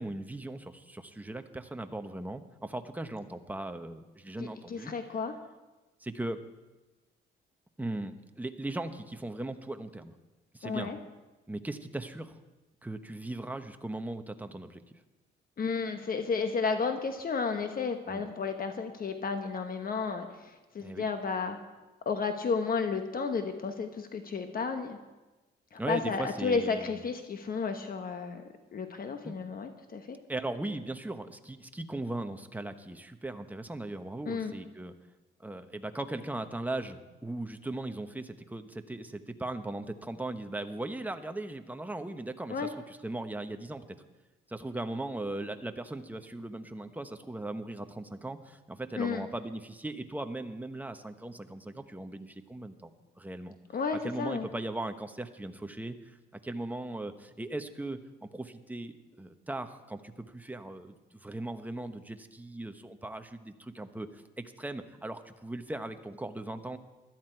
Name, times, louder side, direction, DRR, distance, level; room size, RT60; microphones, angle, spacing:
voice 1, 0.0-4.9 6.0-6.4 7.8-10.1 10.5-10.9 11.5-12.4 12.8-14.8 18.1-18.3 20.8-21.0 25.8-27.0 29.2-29.3 30.3-34.9 35.4-43.8 44.5-52.9 53.2-53.6 54.0-56.2 56.4-66.8, right 2 dB, 10° right, 7 dB, 1.1 m, -38 dB
voice 2, 4.4-5.3 10.6-11.0 15.6-21.6 22.0-25.0 25.7-28.4 28.7-30.2 34.2-34.5 42.5-42.7 48.9-49.3 53.7-54.5, left 5 dB, 45° left, 6 dB, 1.2 m, -32 dB
16.5 x 13.0 x 4.6 m, 1.1 s
cardioid pair, 90°, 20 cm